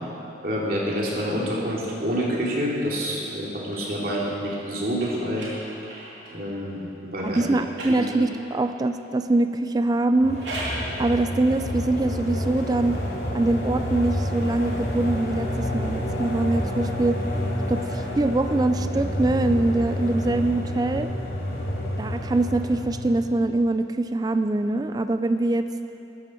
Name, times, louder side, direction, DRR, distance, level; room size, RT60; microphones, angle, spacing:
voice 1, 0.4-5.5 6.3-7.4 7.9-8.1, equal, 55° right, -4 dB, 2.8 m, -27 dB
sound 1, 2.4-6.5 7.3-8.7 10.1-10.9, right 1 dB, 90° right, 3.2 m, -39 dB
voice 2, 7.2-10.4 11.0-13.0 13.3-17.2 17.7-21.1 22.0-25.7, right 2 dB, 20° right, 9 dB, 0.3 m, -23 dB
sound 2, 10.2-23.3, equal, 65° left, 2.4 m, -29 dB
14.0 x 13.0 x 4.4 m, 2.8 s
head